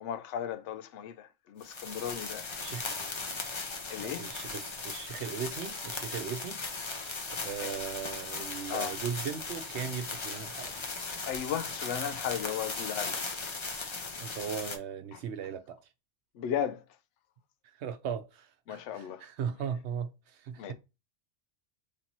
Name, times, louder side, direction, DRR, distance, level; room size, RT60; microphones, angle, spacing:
voice 1, 0.0-2.5 3.2-3.5 3.9-4.3 7.6-7.7 8.7-8.9 11.2-13.2 15.1-15.2 16.4-16.8 18.7-19.3 20.6-20.7, left 9 dB, 80° left, 0.9 m, -36 dB
sound 1, 1.6-14.8, left 3 dB, 35° left, 0.5 m, -38 dB
voice 2, 4.0-6.6 7.4-10.9 14.2-15.8 17.6-20.7, right 7 dB, 75° right, 0.9 m, -38 dB
3.2 x 2.9 x 3.9 m
omnidirectional pair, 1.2 m